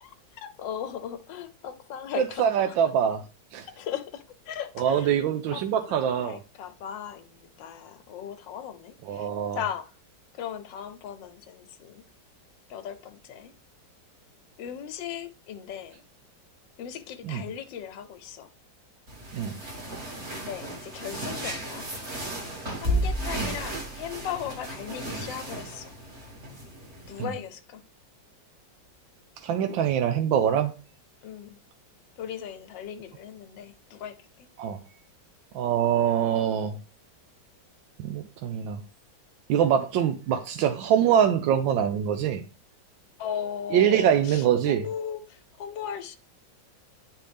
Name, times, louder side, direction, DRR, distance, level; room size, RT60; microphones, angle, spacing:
voice 1, 0.0-2.8 3.8-5.1 5.5-5.6 5.9-9.3 9.6-9.9 10.4-12.0 12.7-13.5 14.6-16.0 16.8-18.5 20.2-21.9 22.8-25.9 27.1-27.8 31.2-31.6 32.2-34.2 43.2-46.2, left 9 dB, 80° left, 1.4 m, -37 dB
voice 2, 2.2-3.2 3.5-3.7 4.8-6.4 9.1-9.6 17.2-17.4 19.3-19.6 23.4-23.5 27.2-27.3 29.4-30.7 34.6-34.8 35.5-36.8 38.0-38.8 39.5-42.4 43.7-44.8, right 9 dB, 85° right, 1.4 m, -24 dB
sound 1, 19.1-27.2, right 1 dB, 35° right, 2.0 m, -34 dB
10.0 x 3.4 x 3.3 m
omnidirectional pair, 2.0 m